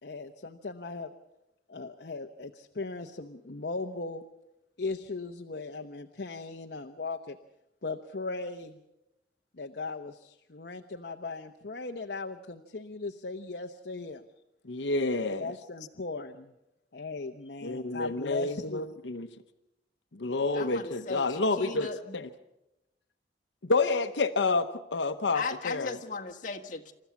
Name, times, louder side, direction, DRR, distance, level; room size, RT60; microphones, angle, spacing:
voice 1, 0.0-1.1 1.7-4.2 4.8-7.4 7.8-8.8 9.5-14.2 15.4-16.5 16.9-19.0, left 3 dB, 60° left, 4 dB, 0.9 m, -38 dB
voice 2, 14.6-15.5 17.6-19.3 20.1-21.9 22.1-22.3 23.6-26.0, left 3 dB, 85° left, 8 dB, 0.9 m, -29 dB
voice 3, 20.5-22.2 25.3-26.9, left 4 dB, 45° left, 1 dB, 1.6 m, -37 dB
28.5 x 14.0 x 7.1 m, 0.92 s
head